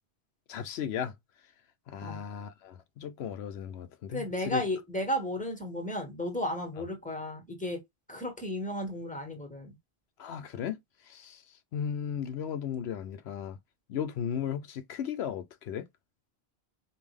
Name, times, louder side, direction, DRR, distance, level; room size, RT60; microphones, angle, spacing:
voice 1, 0.5-1.1 1.9-4.6 10.2-10.8 11.1-11.4 11.7-13.6 13.9-15.8, left 8 dB, 80° left, 0.9 m, -35 dB
voice 2, 4.1-7.8 8.1-9.7, left 1 dB, 5° left, 1.6 m, -34 dB
5.3 x 2.7 x 3.2 m
omnidirectional pair, 1.1 m